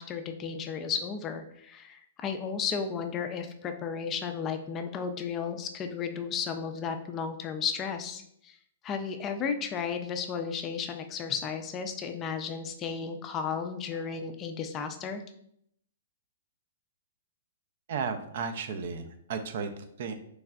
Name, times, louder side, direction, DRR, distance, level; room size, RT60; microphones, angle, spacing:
voice 1, 0.0-8.6 8.8-15.2, left 6 dB, 20° left, 7 dB, 0.3 m, -34 dB
voice 2, 17.9-20.1, right 5 dB, 55° right, 8 dB, 0.4 m, -34 dB
3.7 x 3.2 x 2.3 m, 0.71 s
hypercardioid pair, 160°, 0 cm